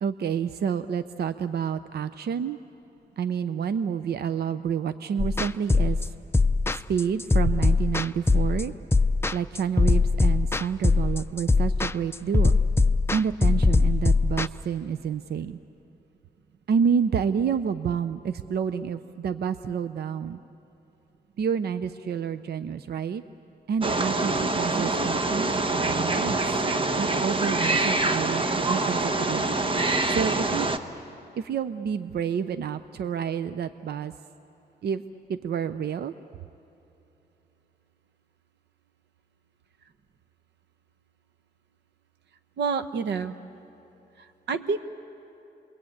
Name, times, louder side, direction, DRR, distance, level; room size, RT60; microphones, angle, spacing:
voice 1, 0.0-2.6 3.2-6.1 6.7-8.7 9.3-12.6 13.1-15.6 16.7-20.4 21.4-23.2 23.7-26.4 27.0-29.5 30.1-30.7 31.3-34.1 34.8-36.1, right 7 dB, 65° right, 12 dB, 0.7 m, -29 dB
sound 1, 5.2-14.5, left 3 dB, 15° left, 0.6 m, -21 dB
Wild animals, 23.8-30.8, right 2 dB, 30° right, 1.3 m, -25 dB
voice 2, 42.6-43.3 44.2-44.9, right 5 dB, 90° right, 11 dB, 1.1 m, -29 dB
29.5 x 22.0 x 8.7 m, 2.9 s
cardioid pair, 95°, 17 cm